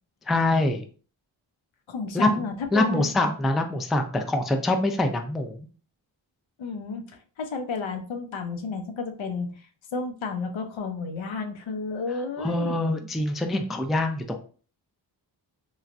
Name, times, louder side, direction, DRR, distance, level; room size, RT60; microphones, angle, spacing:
voice 1, 0.3-0.8 2.1-2.4 2.7-5.6 12.4-14.4, left 1 dB, ahead, 4 dB, 0.3 m, -24 dB
voice 2, 1.9-3.1 6.6-7.0 7.4-9.7 9.9-12.8, left 4 dB, 70° left, 5 dB, 0.7 m, -32 dB
3.1 x 2.3 x 2.4 m, 0.40 s
cardioid pair, 45°, 48 cm